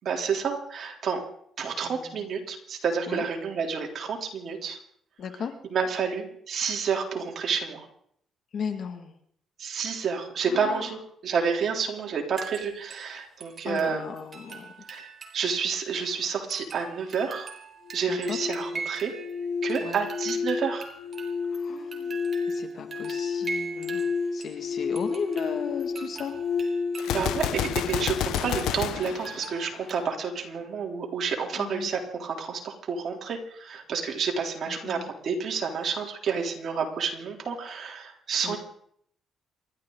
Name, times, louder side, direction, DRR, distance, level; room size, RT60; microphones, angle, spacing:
voice 1, 0.0-1.2 1.6-4.8 5.7-7.9 9.6-14.0 14.9-15.1 15.3-17.5 17.9-19.1 19.6-20.9 27.1-38.6, right 6 dB, 55° right, 1 dB, 3.5 m, -29 dB
voice 2, 1.8-2.2 3.1-3.3 5.2-5.5 8.5-9.1 10.5-10.9 13.6-14.9 18.1-18.4 19.8-20.0 21.6-22.2 22.5-24.1 24.3-26.4 31.5-31.9 34.7-35.1 38.4-38.6, left 6 dB, 60° left, 6 dB, 2.3 m, -35 dB
sound 1, 12.4-13.1 13.4-15.5 15.8-15.9 16.5-19.4 19.7-24.6 24.9-27.2 27.5-27.6 28.4-30.0, right 5 dB, 40° right, 4.0 m, -41 dB
sound 2, 17.8-28.9, left 5 dB, 35° left, 2.2 m, -32 dB
Gunshot gunfire, 27.0-30.1, left 11 dB, 90° left, 1.0 m, -30 dB
28.0 x 12.5 x 4.0 m, 0.67 s
cardioid pair, 90°, 0 cm